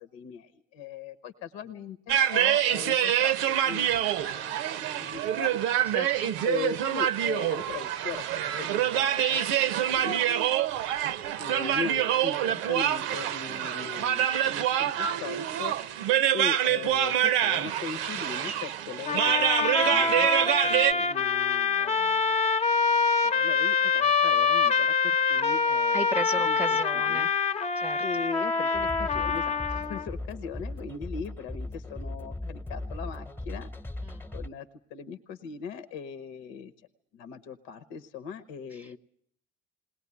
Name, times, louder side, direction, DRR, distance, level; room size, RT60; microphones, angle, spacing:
voice 1, 0.0-5.6 6.4-9.4 9.7-10.3 11.4-16.1 16.3-22.3 23.2-26.1 26.3-27.3 28.0-33.7 34.3-36.7 37.1-39.0, left 7 dB, 75° left, 12 dB, 1.1 m, -39 dB
sound 1, 2.1-20.9, right 11 dB, 70° right, 0.8 m, -26 dB
voice 2, 5.9-6.3 25.9-27.3 27.8-28.0 34.1-34.2 38.8-39.0, right 1 dB, 10° right, 6 dB, 0.9 m, -34 dB
sound 2, 19.0-30.1, left 5 dB, 30° left, 1.0 m, -25 dB
sound 3, 28.7-34.5, left 2 dB, 10° left, 1.1 m, -38 dB
20.0 x 18.5 x 9.6 m, 0.67 s
supercardioid pair, 75°, 21 cm